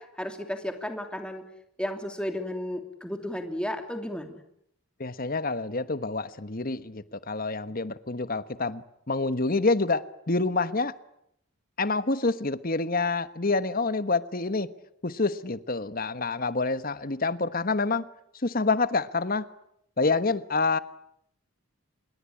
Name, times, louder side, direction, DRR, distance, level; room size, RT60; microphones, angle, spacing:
voice 1, 0.0-1.4 1.8-4.4, left 1 dB, 5° left, 6 dB, 2.9 m, -33 dB
voice 2, 5.0-10.9 11.8-14.7 15.0-18.0 18.4-19.5 20.0-20.8, left 3 dB, 40° left, 14 dB, 1.2 m, -27 dB
27.0 x 22.0 x 9.9 m, 0.76 s
head